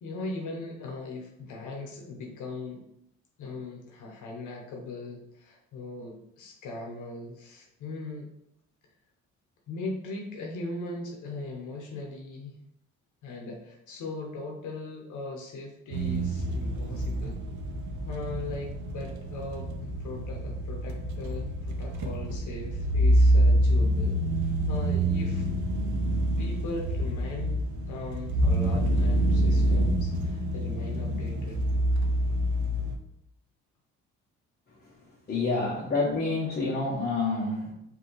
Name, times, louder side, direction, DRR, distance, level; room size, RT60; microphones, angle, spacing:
voice 1, 0.0-2.8 3.4-8.3 9.7-12.6 13.2-17.4 18.0-25.5 26.2-31.7, left 2 dB, 80° left, 1 dB, 0.9 m, -39 dB
sound 1, 15.9-33.0, right 1 dB, 70° right, 0.7 m, -26 dB
voice 2, 35.3-37.7, left 3 dB, 30° left, -5 dB, 1.0 m, -28 dB
5.0 x 2.8 x 3.1 m, 0.78 s
cardioid pair, 90°, 30 cm